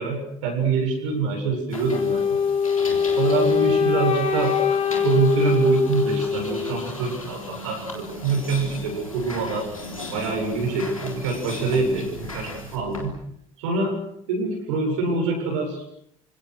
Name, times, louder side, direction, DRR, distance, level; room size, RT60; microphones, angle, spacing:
voice 1, 0.0-2.4 3.2-4.6 5.0-9.7 10.1-13.2 13.6-14.0 14.3-15.8, right 4 dB, 65° right, 1 dB, 7.6 m, -25 dB
sound 1, 1.7-13.1, left 2 dB, 85° left, 3.7 m, -37 dB
Wind instrument woodwind instrument, 1.9-7.0, left 6 dB, 35° left, 3.0 m, -22 dB
28.5 x 26.5 x 6.5 m, 0.69 s
figure-of-eight pair, 60°, 17 cm